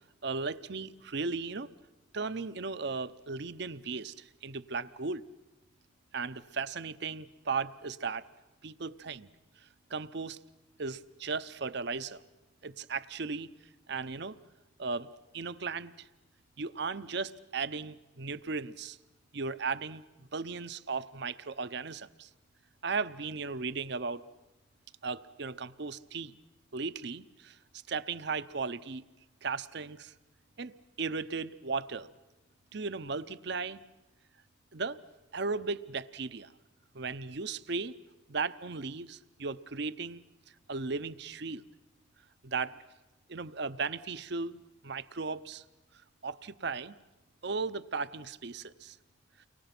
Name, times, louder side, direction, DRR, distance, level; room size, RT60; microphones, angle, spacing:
voice 1, 0.2-1.7 2.1-4.1 4.4-5.2 6.1-8.2 8.6-9.3 9.9-10.4 10.8-12.2 12.6-13.5 13.9-14.4 14.8-15.1 15.3-15.9 16.6-19.0 19.3-20.0 20.3-22.3 22.8-24.2 25.0-26.3 26.7-27.6 27.9-29.0 29.4-30.1 30.6-32.1 32.7-33.8 34.7-35.0 35.3-36.5 36.9-37.9 38.3-40.2 40.7-41.6 42.4-42.8 43.3-45.6 46.2-46.9 47.4-49.0, right 4 dB, 55° right, 14 dB, 0.7 m, -36 dB
30.0 x 23.5 x 6.0 m, 1.0 s
head